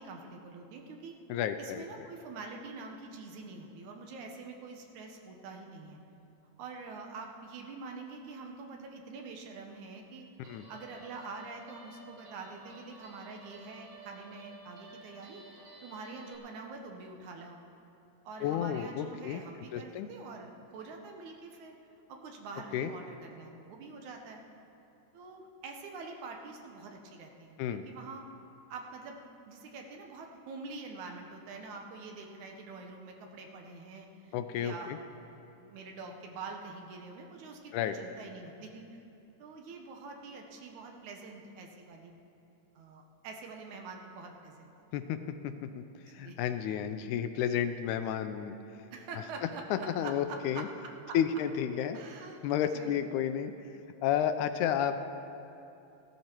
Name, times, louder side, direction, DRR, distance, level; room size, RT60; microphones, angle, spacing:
voice 1, 0.0-1.2 1.6-6.0 6.6-15.4 15.8-17.6 18.2-21.8 22.1-24.4 25.1-28.2 28.7-29.2 29.5-35.2 35.6-39.0 39.4-42.1 42.8-44.7 46.0-46.4 48.9-51.2 51.9-52.4 52.7-53.1, right 4 dB, 75° right, 2 dB, 2.3 m, -45 dB
voice 2, 1.3-2.1 10.5-10.6 18.4-19.4 19.7-20.1 22.7-22.9 27.6-27.8 34.3-35.0 37.7-38.0 44.9-45.2 45.4-45.8 46.1-48.6 49.7-50.7 51.1-52.0 52.4-53.5 54.0-55.0, left 9 dB, 80° left, 9 dB, 1.9 m, -31 dB
Guitar, 10.4-16.4, right 2 dB, 55° right, 2.2 m, -53 dB
15.5 x 12.5 x 4.4 m, 2.9 s
omnidirectional pair, 3.6 m